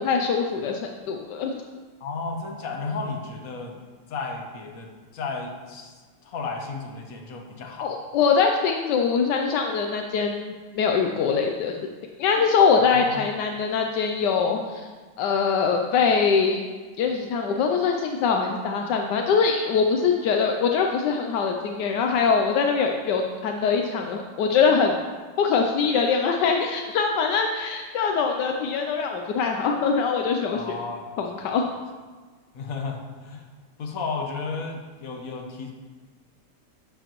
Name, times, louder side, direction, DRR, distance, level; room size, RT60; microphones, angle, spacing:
voice 1, 0.0-1.6 7.8-11.8 12.2-14.9 15.2-16.7 17.0-25.0 25.4-30.8 31.2-31.6, left 5 dB, 80° left, 3 dB, 1.3 m, -23 dB
voice 2, 2.0-3.8 4.1-5.9 6.2-7.9 12.9-13.2 30.5-31.2 32.5-33.4 33.8-35.7, left 4 dB, 55° left, 2 dB, 1.5 m, -33 dB
12.0 x 7.6 x 3.0 m, 1.4 s
omnidirectional pair, 1.9 m